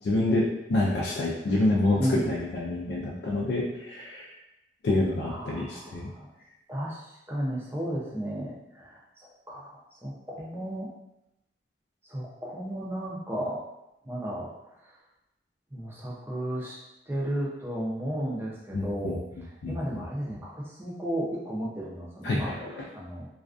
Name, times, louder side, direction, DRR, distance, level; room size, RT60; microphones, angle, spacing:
voice 1, 0.0-4.3 4.8-6.1 18.7-19.1 19.6-19.7 22.2-22.9, left 2 dB, 70° left, -4 dB, 0.4 m, -27 dB
voice 2, 5.2-6.3 6.7-10.9 12.0-13.6 14.0-14.5 14.8-14.9 15.7-16.8 17.1-22.5 22.9-23.3, right 1 dB, 15° right, -5 dB, 0.5 m, -34 dB
2.3 x 2.2 x 2.4 m, 0.89 s
head